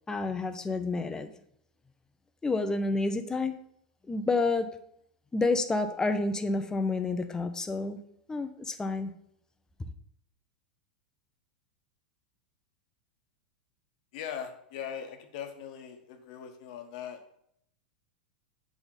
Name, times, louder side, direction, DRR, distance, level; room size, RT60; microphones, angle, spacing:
voice 1, 0.1-1.3 2.4-3.5 4.1-4.7 5.3-8.0 8.3-9.1, left 3 dB, 15° left, 8 dB, 0.7 m, -29 dB
voice 2, 14.1-17.2, left 8 dB, 60° left, 5 dB, 1.2 m, -40 dB
7.9 x 3.5 x 5.6 m, 0.71 s
figure-of-eight pair, 90°, 5 cm